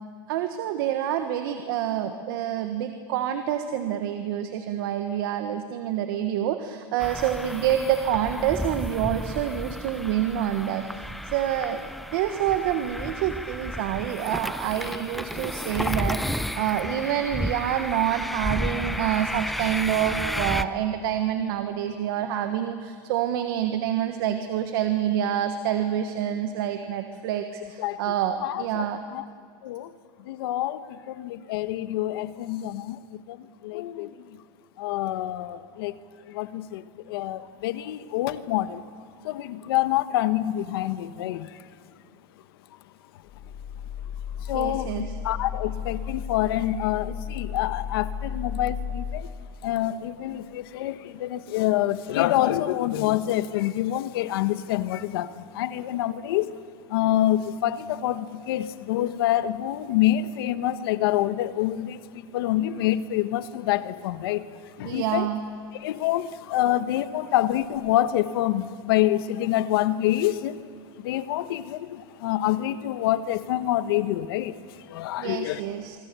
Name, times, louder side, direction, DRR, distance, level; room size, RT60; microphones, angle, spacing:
voice 1, 0.3-11.8 12.1-29.0 44.5-45.1 64.8-65.5 75.2-75.9, right 10 dB, 75° right, 1.5 m, -27 dB
sound 1, 7.0-20.6, equal, ahead, 0.5 m, -32 dB
voice 2, 27.8-28.1 28.4-29.2 29.6-29.9 30.2-34.3 34.8-36.0 36.3-38.8 39.2-41.7 44.4-49.3 49.6-56.6 56.9-65.3 65.7-70.6 71.0-75.6, left 13 dB, 85° left, 1.2 m, -27 dB
sound 2, 43.2-49.2, left 7 dB, 40° left, 3.1 m, -34 dB
25.0 x 25.0 x 7.0 m
supercardioid pair, 160°, 12 cm